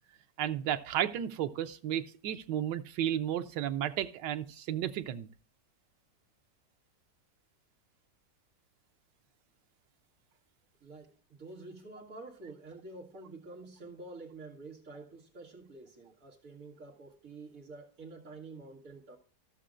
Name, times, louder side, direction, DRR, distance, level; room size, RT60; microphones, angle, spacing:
voice 1, 0.4-5.3, right 10 dB, 90° right, 1.3 m, -33 dB
voice 2, 10.8-19.2, right 3 dB, 55° right, 2.0 m, -48 dB
15.0 x 6.7 x 2.5 m
omnidirectional pair, 1.8 m